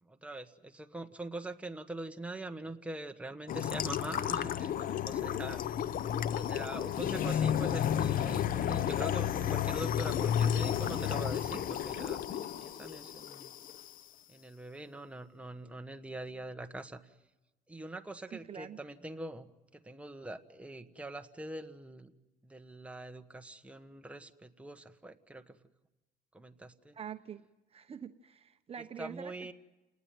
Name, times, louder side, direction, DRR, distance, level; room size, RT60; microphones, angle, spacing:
voice 1, 0.0-5.8 6.3-13.5 14.3-17.1 17.7-22.1 22.4-25.6 26.3-26.9 29.0-29.5, right 2 dB, 5° right, 6 dB, 1.5 m, -44 dB
sound 1, 3.5-13.9, left 9 dB, 55° left, 0.9 m, -32 dB
voice 2, 18.3-18.8 26.9-27.4 27.7-29.5, right 8 dB, 35° right, 8 dB, 1.0 m, -45 dB
29.0 x 19.5 x 9.5 m, 1.1 s
cardioid pair, 110°, 17 cm